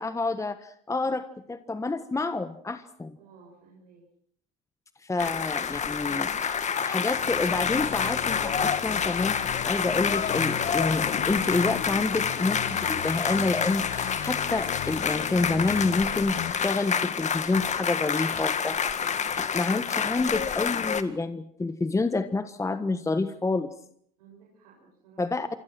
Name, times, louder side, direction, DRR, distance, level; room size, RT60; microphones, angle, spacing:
voice 1, 0.0-3.2 5.0-9.4 9.6-19.0 19.3-23.7 25.2-25.5, left 3 dB, 15° left, 10 dB, 1.4 m, -28 dB
voice 2, 3.2-4.0 24.2-25.4, right 5 dB, 90° right, -3 dB, 7.7 m, -55 dB
sound 1, 5.2-21.0, left 7 dB, 35° left, 2.0 m, -28 dB
sound 2, 7.1-16.5, left 12 dB, 60° left, 1.7 m, -38 dB
29.0 x 24.5 x 6.2 m, 0.67 s
hypercardioid pair, 80°, 20 cm